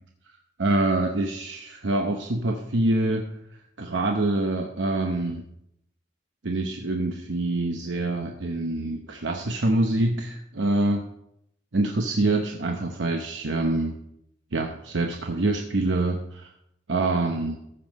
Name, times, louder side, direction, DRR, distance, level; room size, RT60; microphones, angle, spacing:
voice 1, 0.6-3.3 3.8-5.4 6.4-11.0 11.7-13.9 14.5-16.5 16.9-17.6, right 2 dB, 70° right, 3 dB, 0.8 m, -25 dB
14.5 x 5.4 x 5.2 m, 0.78 s
head